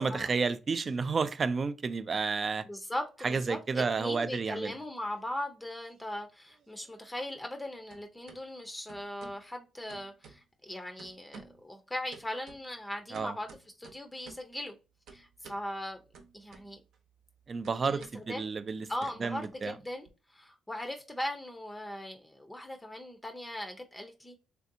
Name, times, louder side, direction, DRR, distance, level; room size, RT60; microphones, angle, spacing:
voice 1, 0.0-2.7 3.2-4.7 13.1-13.3 17.5-18.9 19.2-19.7, right 4 dB, 40° right, 0.3 m, -31 dB
voice 2, 2.7-14.8 15.1-16.0 16.3-16.8 17.8-18.5 18.9-24.4, left 1 dB, 10° left, 0.6 m, -39 dB
sound 1, 4.9-5.7 6.0-7.6 7.9-8.4 8.9-9.4 9.9-10.7 11.0-11.7 12.1-14.5 15.1-15.7 16.1-17.0 17.2-20.1, right 5 dB, 75° right, 0.7 m, -54 dB
3.3 x 2.6 x 2.6 m
cardioid pair, 90°, 0 cm